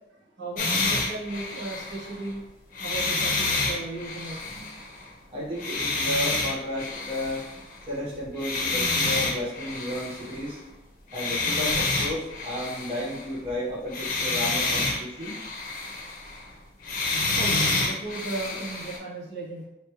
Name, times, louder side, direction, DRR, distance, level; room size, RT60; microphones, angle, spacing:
voice 1, 0.1-2.4 2.8-4.5 17.3-19.7, right 2 dB, 70° right, -6 dB, 1.2 m, -36 dB
sound 1, 0.6-2.3 2.7-5.1 5.6-7.9 8.3-10.5 11.1-13.5 13.9-16.5 16.8-19.0, left 3 dB, 45° left, 0.7 m, -28 dB
voice 2, 5.3-7.5 7.9-10.6 11.1-15.4, left 1 dB, 30° right, -8 dB, 1.1 m, -33 dB
3.1 x 3.1 x 3.1 m, 0.94 s
head